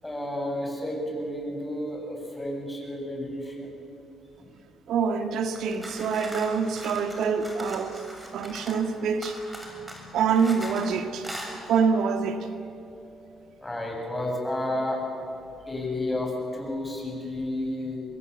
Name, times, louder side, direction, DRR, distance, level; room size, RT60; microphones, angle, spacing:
voice 1, 0.0-3.7 4.4-4.5 8.3-8.4 9.3-9.4 9.6-10.1 13.6-15.0 15.7-18.0, left 1 dB, 10° left, 7.9 m, -32 dB
voice 2, 4.9-8.0 8.3-9.5 10.1-11.3 11.7-12.5, right 6 dB, 80° right, 1.8 m, -26 dB
sound 1, 5.5-8.9 9.2-10.9 11.2-11.5, equal, 15° right, 6.7 m, -40 dB
26.0 x 21.0 x 8.5 m
cardioid pair, 90°, 0 cm